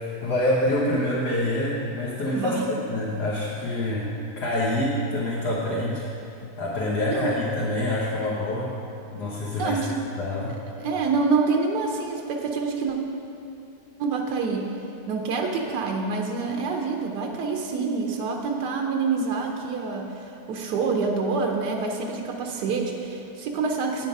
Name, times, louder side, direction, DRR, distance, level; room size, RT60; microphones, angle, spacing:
voice 1, 0.0-6.0 6.6-8.7 9.1-9.8 10.2-10.5, left 1 dB, 75° left, -6 dB, 1.8 m, -26 dB
voice 2, 2.3-2.7 7.1-7.3 9.6-10.0 10.8-13.0 14.0-14.7 15.1-24.1, right 4 dB, 90° right, 2 dB, 1.4 m, -27 dB
9.2 x 7.5 x 5.3 m, 2.7 s
omnidirectional pair, 1.7 m